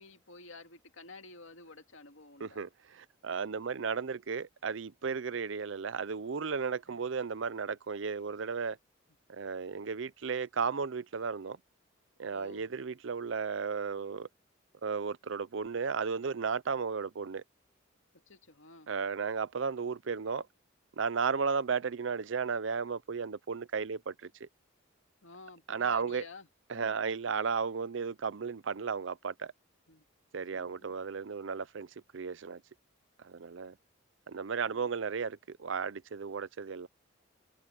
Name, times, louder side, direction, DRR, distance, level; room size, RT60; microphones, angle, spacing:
voice 1, 0.0-2.6 3.3-3.4 6.9-7.0 12.3-12.7 18.3-18.9 25.2-26.5 26.7-27.0 29.9-30.0 30.5-31.0 34.7-34.9, left 3 dB, 75° left, 2.2 m, -52 dB
voice 2, 2.4-8.8 9.3-11.6 12.2-14.3 14.8-17.4 18.9-20.5 21.0-24.5 25.7-26.2 26.7-29.5 30.3-32.6 33.2-33.7 34.3-36.9, right 5 dB, 70° right, 0.6 m, -34 dB
head